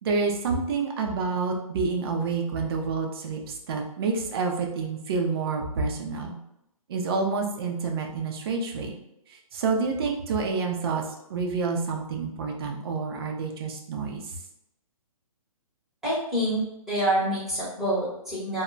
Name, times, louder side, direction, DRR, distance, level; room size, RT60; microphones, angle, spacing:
voice 1, 0.0-6.3 6.9-9.0 9.3-14.4, right 4 dB, 40° right, 1 dB, 0.5 m, -28 dB
voice 2, 16.0-16.6 16.9-18.6, right 1 dB, ahead, -11 dB, 0.9 m, -26 dB
2.1 x 2.1 x 3.7 m, 0.83 s
hypercardioid pair, 150°, 19 cm